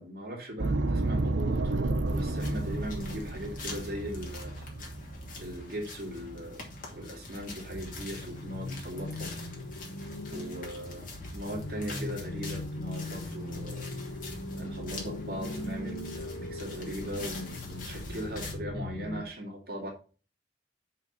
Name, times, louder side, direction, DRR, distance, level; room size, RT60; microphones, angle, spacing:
voice 1, 0.0-4.7 5.4-6.6 6.9-9.3 10.3-11.1 11.3-13.8 14.6-19.9, equal, 55° right, 0 dB, 2.5 m, -39 dB
sound 1, 0.6-5.6, right 2 dB, 90° right, 0.9 m, -31 dB
sound 2, 2.0-18.5, left 2 dB, 50° left, 2.6 m, -44 dB
sound 3, 8.0-19.2, left 2 dB, 80° left, 1.0 m, -40 dB
6.0 x 5.6 x 5.3 m, 0.37 s
head